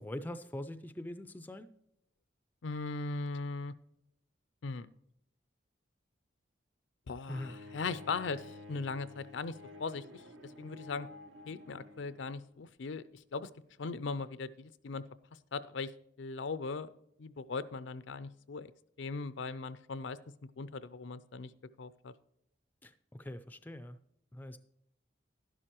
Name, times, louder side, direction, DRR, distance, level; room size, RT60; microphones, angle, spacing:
voice 1, 0.0-1.7 7.3-7.5 22.8-24.0 24.3-24.6, left 1 dB, 10° left, 11 dB, 0.3 m, -43 dB
voice 2, 2.6-3.7 4.6-4.9 7.1-9.5 9.8-10.0 10.6-11.1 11.5-13.0 13.3-13.5 13.8-15.0 15.5-15.9 16.2-16.9 17.2-18.7 19.0-20.2 20.6-21.5 21.8-22.1, left 4 dB, 75° left, 15 dB, 0.5 m, -38 dB
Bowed string instrument, 7.3-12.4, left 2 dB, 75° right, 1.0 m, -51 dB
11.5 x 11.0 x 3.0 m, 0.76 s
head